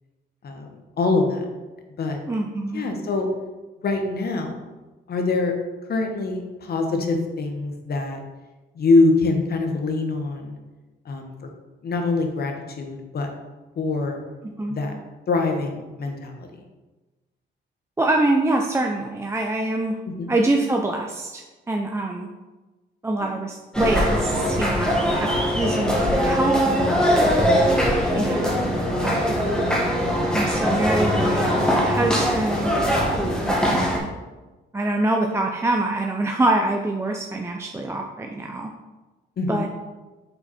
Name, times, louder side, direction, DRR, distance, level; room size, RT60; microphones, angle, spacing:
voice 1, 1.0-1.4 2.0-2.2 2.7-3.3 3.8-4.6 5.1-5.5 5.9-8.2 8.7-10.6 11.0-11.5 11.8-13.3 13.8-14.2 14.7-14.9 15.3-16.6 20.1-20.3 23.2-23.3 28.3-28.4 39.4-39.7, left 3 dB, 50° left, 4 dB, 1.1 m, -24 dB
voice 2, 2.3-2.8 14.4-14.8 18.0-20.0 20.3-22.3 23.0-27.3 28.1-28.7 29.0-29.3 30.3-32.7 33.2-34.1 34.7-38.7 39.5-39.7, right 2 dB, 15° right, 2 dB, 0.5 m, -25 dB
sound 1, 23.7-34.0, equal, 5° left, 1.6 m, -21 dB
5.8 x 4.0 x 4.2 m, 1.2 s
cardioid pair, 90°, 20 cm